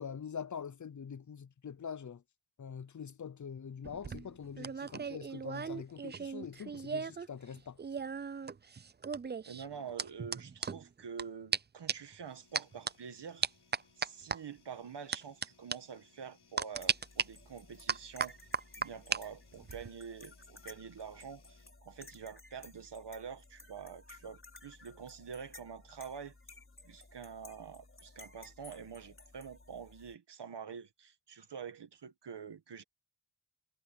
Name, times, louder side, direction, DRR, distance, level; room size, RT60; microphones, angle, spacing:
voice 1, 0.0-2.2 2.6-7.8, left 7 dB, 45° left, 0.6 m, -44 dB
sound 1, 3.8-7.3 7.5-11.2 11.5-11.6 11.9-12.1 12.5-12.9 13.4-14.4 15.1-15.5 15.7-15.8 16.6-17.2 17.9-19.2 19.5-19.9, right 5 dB, 25° right, 0.4 m, -36 dB
voice 2, 9.5-13.5 14.0-18.4 18.8-26.3 26.8-32.8, right 7 dB, 85° right, 1.6 m, -47 dB
sound 2, 12.2-21.7, left 6 dB, 75° left, 5.2 m, -68 dB
sound 3, 16.7-30.1, left 2 dB, 30° left, 4.6 m, -56 dB
wide cardioid pair, 105°, 40 cm